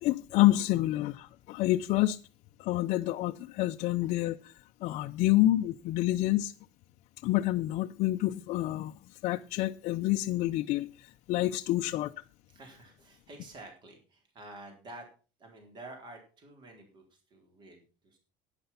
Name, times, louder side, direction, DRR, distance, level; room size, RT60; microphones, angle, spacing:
voice 1, 0.0-2.2 2.6-4.5 4.8-6.5 7.2-12.2, left 16 dB, 55° left, 0.6 m, -28 dB
voice 2, 12.5-15.1 15.4-18.2, right 2 dB, 35° right, 3.9 m, -49 dB
11.5 x 9.9 x 5.7 m
cardioid pair, 145°, 14 cm